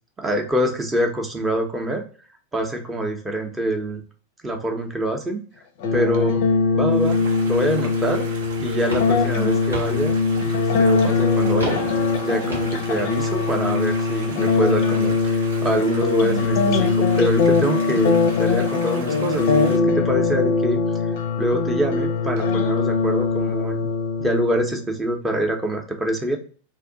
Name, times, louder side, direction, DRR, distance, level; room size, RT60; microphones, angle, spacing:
voice 1, 0.2-2.0 2.5-4.0 4.4-5.4 5.9-6.5 6.7-8.2 8.6-10.2 10.4-11.8 12.2-21.1 21.4-23.9 24.2-26.4, right 1 dB, 10° right, 3 dB, 0.7 m, -25 dB
sound 1, 5.8-24.8, left 4 dB, 50° left, 0.5 m, -21 dB
sound 2, 6.9-19.8, right 3 dB, 60° right, 0.7 m, -39 dB
sound 3, 8.4-13.8, right 3 dB, 75° right, 1.1 m, -37 dB
2.7 x 2.5 x 3.7 m, 0.41 s
figure-of-eight pair, 90°, 0 cm